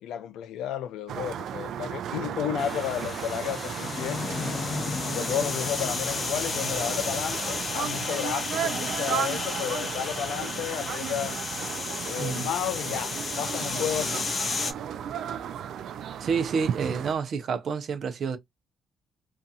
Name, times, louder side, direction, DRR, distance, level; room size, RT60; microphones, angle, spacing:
voice 1, 0.0-4.2 5.1-11.4 12.1-14.3, left 10 dB, 90° left, 0.4 m, -32 dB
sound 1, 1.1-17.1, right 9 dB, 75° right, 0.3 m, -35 dB
sound 2, 2.6-14.7, left 4 dB, 45° left, 0.6 m, -32 dB
voice 2, 12.2-12.5 16.2-18.4, right 6 dB, 60° right, 0.7 m, -28 dB
2.7 x 2.5 x 2.3 m
cardioid pair, 90°, 0 cm